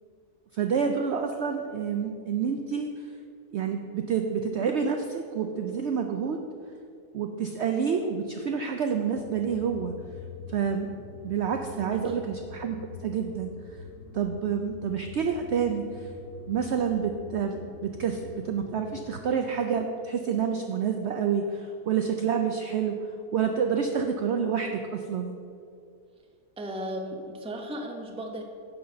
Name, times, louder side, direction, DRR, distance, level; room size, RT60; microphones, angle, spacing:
voice 1, 0.5-3.1 3.5-6.4 7.1-10.0 10.5-10.9 11.2-13.5 14.1-16.1 16.5-22.9 23.3-25.4, right 6 dB, 65° right, 5 dB, 0.7 m, -28 dB
sound 1, 9.1-19.3, left 5 dB, 90° left, 1.3 m, -45 dB
voice 2, 11.7-12.1 26.6-28.4, right 1 dB, 5° right, 2 dB, 0.6 m, -36 dB
10.0 x 4.0 x 7.6 m, 2.4 s
omnidirectional pair, 1.6 m